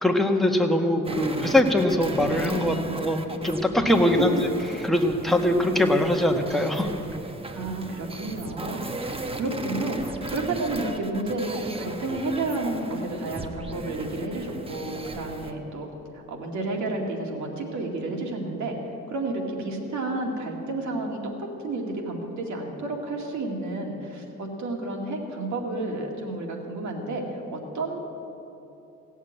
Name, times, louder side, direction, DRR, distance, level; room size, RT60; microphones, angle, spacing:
voice 1, 0.0-4.4 4.8-6.9, left 1 dB, ahead, 2 dB, 1.4 m, -22 dB
sound 1, 1.0-15.5, right 2 dB, 20° right, 1.0 m, -36 dB
voice 2, 2.6-3.0 4.0-4.4 7.5-15.9 16.3-18.8 19.1-28.0, right 2 dB, 70° right, 1 dB, 2.3 m, -31 dB
16.5 x 7.2 x 9.0 m, 3.0 s
cardioid pair, 90°, 30 cm